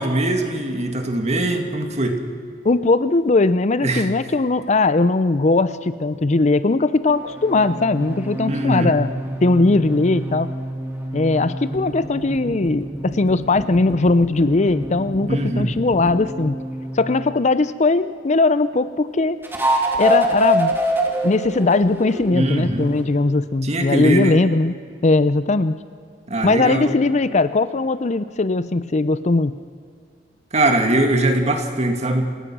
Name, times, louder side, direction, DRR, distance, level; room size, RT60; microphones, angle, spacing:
voice 1, 0.0-2.2 3.8-4.1 8.5-8.9 15.3-15.7 22.3-22.9 23.6-24.4 26.3-26.9 30.5-32.3, right 1 dB, 40° right, 5 dB, 2.3 m, -21 dB
voice 2, 2.6-9.1 9.4-10.5 11.1-16.6 16.9-19.4 20.0-20.7 21.2-24.8 25.0-25.8 26.4-29.5, left 3 dB, 40° left, 14 dB, 0.6 m, -19 dB
sound 1, 7.1-17.2 19.4-23.1, right 1 dB, 15° right, 3.0 m, -27 dB
28.5 x 17.5 x 6.2 m, 2.2 s
head